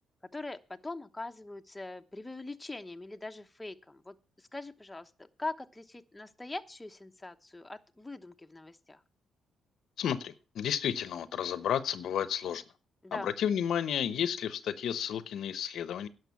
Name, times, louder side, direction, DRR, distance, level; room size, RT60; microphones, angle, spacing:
voice 1, 0.3-9.0 13.0-13.3, left 2 dB, 10° left, 6 dB, 1.0 m, -42 dB
voice 2, 10.0-12.6 13.1-16.1, left 9 dB, 70° left, 14 dB, 0.8 m, -32 dB
11.0 x 6.5 x 8.3 m, 0.34 s
cardioid pair, 90°, 0 cm